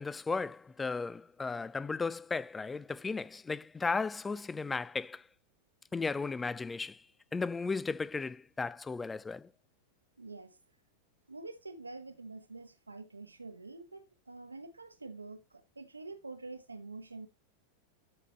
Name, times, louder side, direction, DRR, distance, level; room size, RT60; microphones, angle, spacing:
voice 1, 0.0-5.2 5.9-7.0 7.3-9.5, left 4 dB, 15° left, 0.3 m, -35 dB
voice 2, 10.2-10.6 11.3-17.3, right 3 dB, 80° right, 1.1 m, -47 dB
12.5 x 4.9 x 3.0 m
figure-of-eight pair, 90°, 0 cm